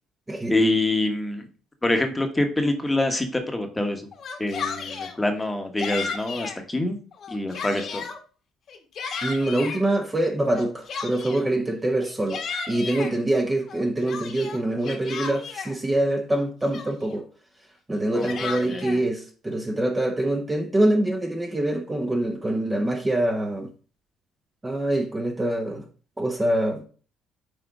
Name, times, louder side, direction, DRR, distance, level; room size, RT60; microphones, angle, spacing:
voice 1, 0.5-1.5 1.8-4.1 4.4-7.0 7.3-8.0 18.1-19.0, left 1 dB, 10° left, 1.2 m, -25 dB
Yell, 4.1-5.2 5.8-6.6 7.1-8.2 8.7-9.8 10.5-11.5 12.0-13.1 13.7-15.7 16.3-16.4 16.7-17.2 17.9-19.0, left 5 dB, 50° left, 1.4 m, -34 dB
voice 2, 9.2-17.2 17.9-23.7 24.6-25.8 26.2-26.8, right 1 dB, 15° right, 0.9 m, -25 dB
6.3 x 4.2 x 4.8 m
cardioid pair, 120°, 0 cm